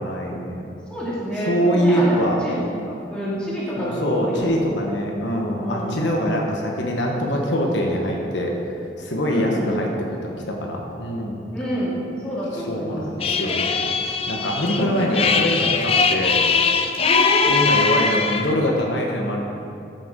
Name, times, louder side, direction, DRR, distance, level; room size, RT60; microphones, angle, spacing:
voice 1, 0.0-0.7 1.4-2.4 3.8-9.9 10.2-11.5 12.5-13.8 14.3-16.4 17.5-19.4, equal, 85° left, 0 dB, 1.3 m, -23 dB
voice 2, 0.9-2.1 2.4-4.6 5.6-6.2 9.3-9.7 11.5-13.0 14.8-15.3 17.0-17.6, equal, 5° left, -9 dB, 2.4 m, -28 dB
sound 1, 13.2-18.5, left 5 dB, 30° left, 0.4 m, -21 dB
13.0 x 6.9 x 3.8 m, 2.6 s
head